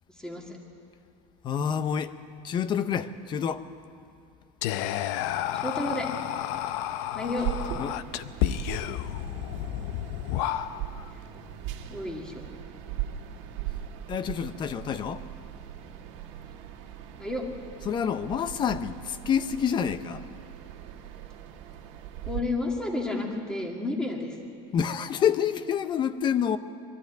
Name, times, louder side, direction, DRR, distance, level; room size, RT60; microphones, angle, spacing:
voice 1, 0.2-0.6 5.5-6.1 7.0-7.5 11.9-12.4 17.2-17.4 22.2-24.4, left 2 dB, 5° left, 2.1 m, -31 dB
voice 2, 1.4-2.1 2.4-3.6 7.8-8.0 14.1-15.2 17.9-20.2 24.7-26.6, left 8 dB, 30° left, 0.7 m, -27 dB
Whispering, 4.6-11.1, left 12 dB, 75° left, 0.6 m, -31 dB
sound 1, 7.4-22.4, right 11 dB, 80° right, 2.0 m, -39 dB
22.5 x 13.0 x 9.2 m
cardioid pair, 155°, 15 cm